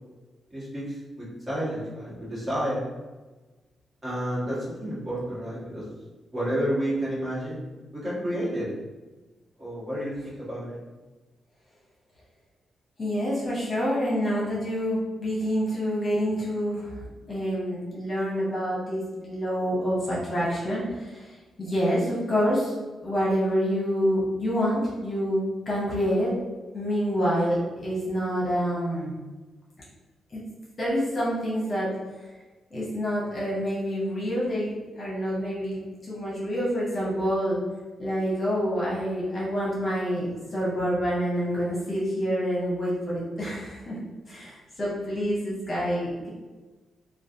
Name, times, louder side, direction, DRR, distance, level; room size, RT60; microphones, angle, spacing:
voice 1, 0.5-2.9 4.0-5.8 6.3-8.7 9.6-10.8, equal, 30° right, -9 dB, 1.4 m, -30 dB
voice 2, 13.0-22.7 23.0-26.4 26.7-29.1 30.3-30.4 30.8-32.3 32.7-37.6 38.0-44.0 44.3-46.3, equal, 35° left, -6 dB, 1.0 m, -27 dB
3.1 x 2.3 x 2.6 m, 1.2 s
cardioid pair, 95°, 0 cm